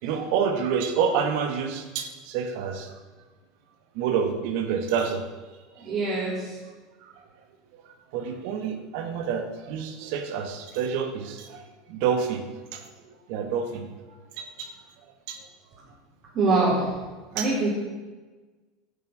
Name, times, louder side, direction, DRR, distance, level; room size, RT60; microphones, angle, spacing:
voice 1, 0.0-2.9 4.0-5.2 5.8-5.9 7.0-7.1 8.1-11.6 11.9-12.5 12.7-13.9 14.4-14.7 15.3-15.4 17.4-17.5, right 7 dB, 70° right, 6 dB, 1.9 m, -28 dB
voice 2, 5.8-6.6 16.3-16.9 17.3-17.7, right 3 dB, 50° right, -7 dB, 4.5 m, -24 dB
11.5 x 8.0 x 7.6 m, 1.3 s
supercardioid pair, 105°, 0 cm